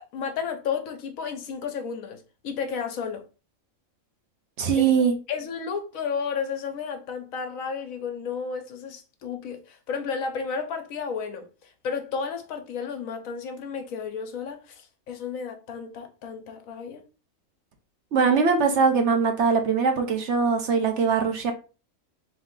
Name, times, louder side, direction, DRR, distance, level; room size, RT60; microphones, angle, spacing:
voice 1, 0.1-3.2 4.7-4.8 5.3-17.0, left 6 dB, 75° left, 1.2 m, -32 dB
voice 2, 4.6-5.1 18.1-21.5, right 5 dB, 60° right, 1.0 m, -21 dB
3.5 x 3.2 x 3.6 m
omnidirectional pair, 1.4 m